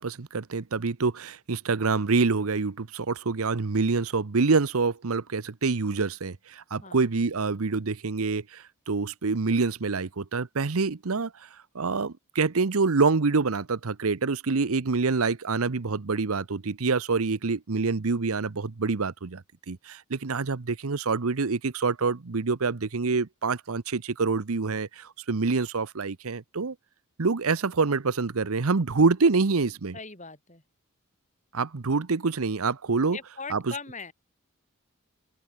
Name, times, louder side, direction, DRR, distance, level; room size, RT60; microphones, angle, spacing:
voice 1, 0.0-11.3 11.7-26.7 27.2-30.0 31.5-33.2 33.5-33.6, right 4 dB, 80° right, 0.8 m, -26 dB
voice 2, 6.8-7.1 29.9-30.6 33.1-34.1, left 4 dB, 35° left, 6.8 m, -40 dB
open air
head